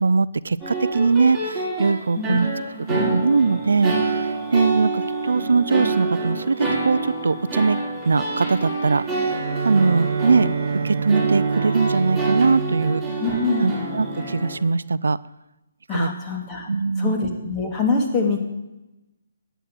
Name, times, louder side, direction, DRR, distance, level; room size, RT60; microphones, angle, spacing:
voice 1, 0.0-2.5 2.9-7.8 8.1-10.5 10.8-13.0 13.6-15.2 15.9-16.1 16.7-17.2, right 4 dB, 80° right, 18 dB, 0.4 m, -21 dB
sound 1, 0.6-14.6, right 3 dB, ahead, 5.6 m, -27 dB
Bowed string instrument, 8.6-14.2, right 5 dB, 60° right, 1.6 m, -29 dB
voice 2, 13.2-13.9 15.9-16.7 17.0-18.4, left 3 dB, 20° left, 1 dB, 2.7 m, -24 dB
12.5 x 9.0 x 9.2 m, 1.0 s
hypercardioid pair, 150°, 0 cm